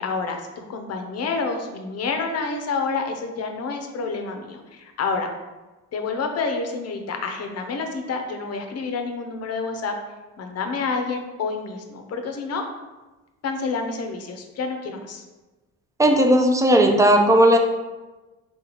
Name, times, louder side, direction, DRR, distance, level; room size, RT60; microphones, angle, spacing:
voice 1, 0.0-5.3 5.9-9.9 10.4-12.6 13.4-15.2, left 4 dB, 55° left, 4 dB, 0.7 m, -28 dB
voice 2, 16.0-17.6, right 1 dB, 10° right, 4 dB, 0.5 m, -16 dB
3.9 x 3.7 x 3.0 m, 1.2 s
cardioid pair, 90°, 30 cm